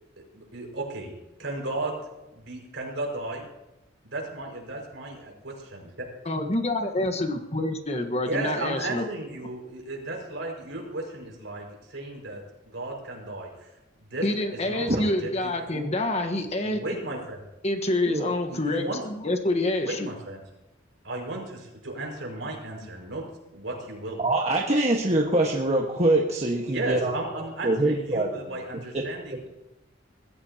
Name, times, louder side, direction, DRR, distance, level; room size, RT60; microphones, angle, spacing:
voice 1, 0.3-2.0 2.3-3.5 4.0-5.8 8.2-13.7 14.0-14.3 14.5-15.9 16.6-17.4 18.5-19.0 19.8-20.4 21.0-23.2 23.5-24.2 26.6-29.5, right 2 dB, 65° right, 0 dB, 5.6 m, -35 dB
voice 2, 6.3-9.0 14.2-16.8 17.6-20.1, left 1 dB, 35° left, 5 dB, 1.4 m, -27 dB
voice 3, 24.2-28.3, right 2 dB, 35° right, -1 dB, 1.5 m, -24 dB
22.0 x 15.0 x 2.9 m, 0.96 s
head